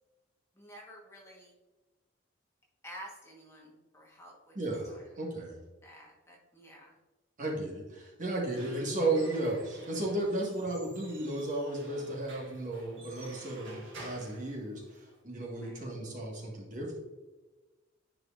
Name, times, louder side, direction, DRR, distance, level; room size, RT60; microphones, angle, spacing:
voice 1, 0.6-1.5 2.8-4.6 4.9-5.0 5.8-7.0 15.6-15.8, equal, 15° left, -2 dB, 1.2 m, -50 dB
voice 2, 4.5-5.6 7.4-17.0, right 2 dB, 40° right, -2 dB, 1.6 m, -34 dB
Squeak / Wood, 8.3-15.2, right 2 dB, 65° right, 1.9 m, -51 dB
10.0 x 4.9 x 2.5 m, 1.2 s
head